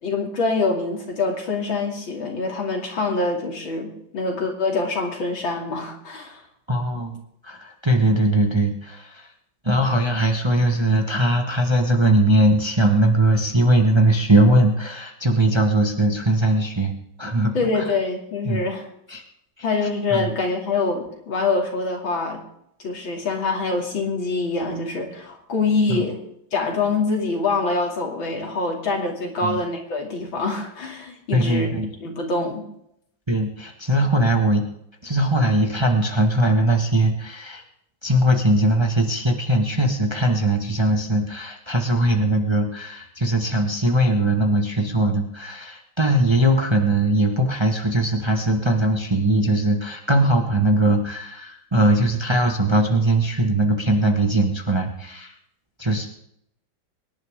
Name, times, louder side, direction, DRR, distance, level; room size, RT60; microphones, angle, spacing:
voice 1, 0.0-6.4 17.5-18.9 19.6-22.4 22.8-26.2 26.5-31.7 32.0-32.6, left 3 dB, 80° left, 1 dB, 3.6 m, -25 dB
voice 2, 6.7-9.3 9.6-18.0 18.4-18.6 19.1-19.2 19.6-19.7 20.1-20.3 25.9-26.0 29.4-29.6 31.3-31.9 33.3-34.6 35.0-37.6 38.0-55.3 55.8-56.1, right 1 dB, 15° right, 3 dB, 1.4 m, -20 dB
24.5 x 10.5 x 3.7 m, 0.73 s
omnidirectional pair, 2.1 m